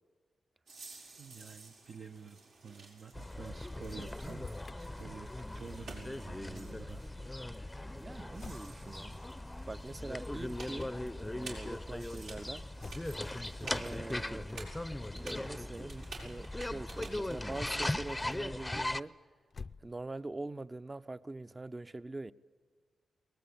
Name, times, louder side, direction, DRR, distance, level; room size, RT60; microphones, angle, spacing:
sound 1, 0.7-18.4, right 3 dB, 90° right, 5.5 m, -52 dB
voice 1, 1.2-4.4 4.7-5.3 5.5-7.2 8.1-8.3 9.5-9.7, right 6 dB, 65° right, 0.9 m, -50 dB
sound 2, 3.1-19.0, left 1 dB, 15° left, 0.7 m, -39 dB
Motor vehicle (road), 4.2-4.8 8.4-8.8 10.7-11.1 12.8-13.2 14.8-15.2 19.4-20.3, left 5 dB, 50° left, 0.6 m, -49 dB
voice 2, 7.9-10.9 11.3-12.7 13.0-13.2 13.7-14.5 15.1-19.1 19.8-22.3, right 2 dB, 25° right, 0.7 m, -44 dB
23.5 x 19.0 x 8.6 m
supercardioid pair, 55°, 0 cm